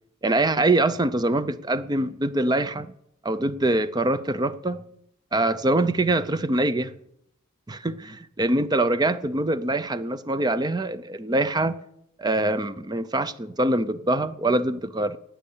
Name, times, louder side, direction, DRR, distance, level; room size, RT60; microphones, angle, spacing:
voice 1, 0.2-2.9 3.2-4.8 5.3-6.9 7.7-11.8 12.2-15.2, right 2 dB, 20° right, 0.5 m, -24 dB
12.0 x 9.0 x 8.4 m
head